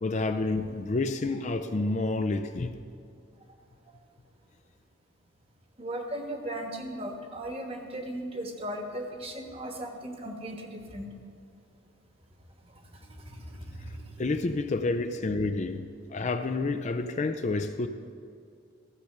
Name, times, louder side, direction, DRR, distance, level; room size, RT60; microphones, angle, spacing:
voice 1, 0.0-2.7 14.2-17.9, left 3 dB, 35° left, 0.4 m, -29 dB
voice 2, 5.8-11.1 12.9-14.2, right 1 dB, 30° right, 1.2 m, -37 dB
14.5 x 7.0 x 6.6 m
head